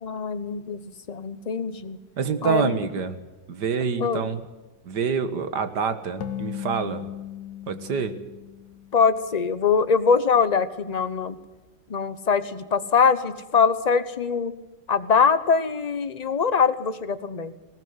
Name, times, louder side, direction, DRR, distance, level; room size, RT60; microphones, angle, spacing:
voice 1, 0.0-2.0 2.4-2.8 4.0-4.3 8.9-11.4 11.9-14.5 14.9-17.5, left 5 dB, 30° left, 12 dB, 0.7 m, -23 dB
voice 2, 2.2-3.2 3.5-4.4 4.8-7.1 7.7-8.2, right 6 dB, 65° right, 11 dB, 2.0 m, -27 dB
sound 1, 6.2-9.7, left 10 dB, 75° left, 1.9 m, -37 dB
20.0 x 17.5 x 8.0 m, 1.1 s
omnidirectional pair, 2.0 m